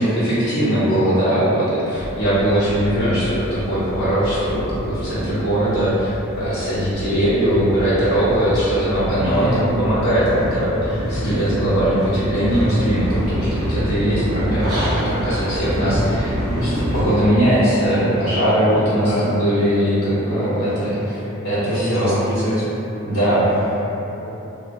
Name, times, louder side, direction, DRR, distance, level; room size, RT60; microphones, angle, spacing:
voice 1, 0.0-21.2 21.4-22.1 23.1-23.6, right 1 dB, 90° left, -15 dB, 0.8 m, -20 dB
sound 1, 1.9-17.0, equal, 75° right, 0.8 m, -27 dB
voice 2, 9.2-9.7 19.1-19.4 20.3-21.1 21.6-22.8 24.1-24.3, equal, 30° right, -13 dB, 1.4 m, -25 dB
3.4 x 2.2 x 2.5 m, 3.0 s
head